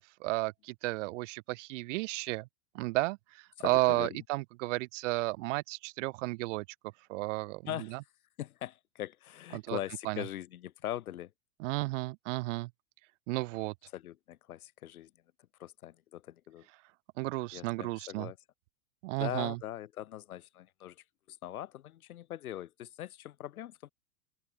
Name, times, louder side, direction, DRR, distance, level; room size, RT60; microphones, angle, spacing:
voice 1, 0.0-2.5 2.7-6.6 7.1-7.6 7.9-8.0 9.5-9.8 10.0-10.2 11.6-12.7 13.3-13.7 17.2-18.3 19.0-19.6, right 22 dB, 60° right, 1.5 m, -33 dB
voice 2, 3.6-4.2 7.7-8.0 8.4-11.3 13.9-15.1 15.6-16.7 17.5-18.4 19.2-23.9, left 12 dB, 85° left, 4.8 m, -41 dB
open air
supercardioid pair, 140°, 42 cm